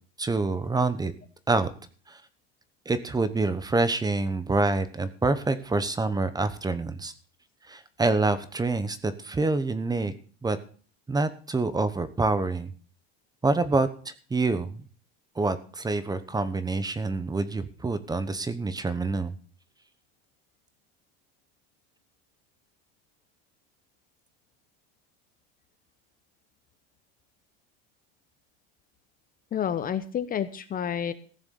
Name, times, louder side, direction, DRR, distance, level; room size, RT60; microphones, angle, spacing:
voice 1, 0.2-1.1 1.5-1.7 2.1-2.2 2.8-7.1 7.7-10.1 10.4-10.6 11.1-12.7 13.4-14.8 15.4-19.3, right 3 dB, 10° right, 13 dB, 1.0 m, -26 dB
voice 2, 29.5-31.1, left 8 dB, 30° left, 12 dB, 0.8 m, -29 dB
15.5 x 7.0 x 7.0 m, 0.41 s
supercardioid pair, 130°, 31 cm